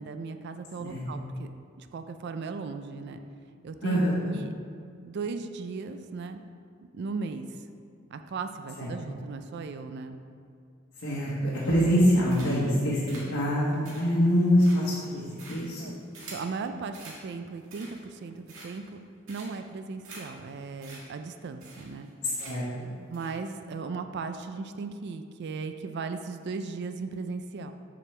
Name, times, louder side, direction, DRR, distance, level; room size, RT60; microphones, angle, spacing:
voice 1, 0.0-1.5 1.8-3.2 3.6-4.5 5.0-6.4 6.9-7.5 8.1-10.2 15.8-16.0 16.3-19.0 19.3-22.1 23.1-27.7, right 4 dB, 55° right, 8 dB, 0.4 m, -37 dB
voice 2, 3.8-4.2 8.8-8.9 11.0-15.2 15.5-15.9 22.2-22.9, equal, 70° left, -7 dB, 1.2 m, -25 dB
sound 1, 11.5-11.9 12.3-12.7 13.1-16.5 16.9-17.2 17.6-18.1 18.5-18.9 19.3-19.7 20.0-20.2 20.5-20.6 20.8-21.0 21.3-21.4 21.6-22.1 22.4-22.7 23.1-23.3, right 3 dB, 85° right, 1.8 m, -47 dB
7.6 x 5.9 x 3.3 m, 2.3 s
head